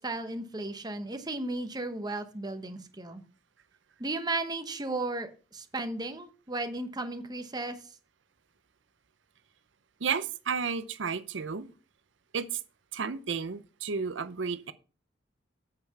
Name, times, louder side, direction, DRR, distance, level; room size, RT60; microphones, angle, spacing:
voice 1, 0.0-3.2 4.0-7.8, right 2 dB, 20° right, 1.1 m, -35 dB
voice 2, 10.0-11.7 12.3-12.6 12.9-14.7, right 6 dB, 85° right, 0.7 m, -32 dB
8.7 x 6.9 x 5.8 m
head